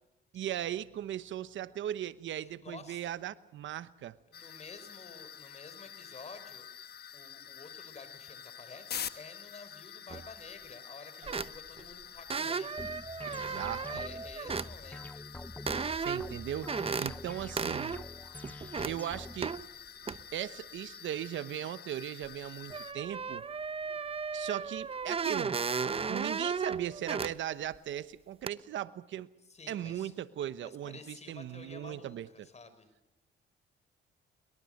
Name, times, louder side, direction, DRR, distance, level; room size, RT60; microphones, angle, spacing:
voice 1, 0.3-4.2 13.3-13.9 16.0-17.9 18.9-19.6 20.3-23.4 24.3-25.6 26.1-29.3 29.7-32.5, right 11 dB, 70° right, 15 dB, 1.0 m, -38 dB
voice 2, 2.4-3.1 4.3-6.7 7.1-12.7 13.9-15.2 29.5-30.1 30.6-32.9, left 4 dB, 35° left, 11 dB, 4.9 m, -51 dB
sound 1, 4.3-22.9, left 9 dB, 55° left, 1.3 m, -47 dB
sound 2, 10.1-10.3 11.2-11.8 12.3-14.7 15.7-16.3 16.7-17.1 17.6-18.0 18.4-18.9 19.4-19.6 20.1-20.2 22.2-22.3 22.7-27.3 27.7-27.8 28.5-28.6, right 5 dB, 30° right, 0.8 m, -35 dB
sound 3, 12.8-19.6, left 1 dB, 10° left, 0.9 m, -46 dB
23.0 x 22.0 x 6.6 m, 0.96 s
cardioid pair, 90°, 20 cm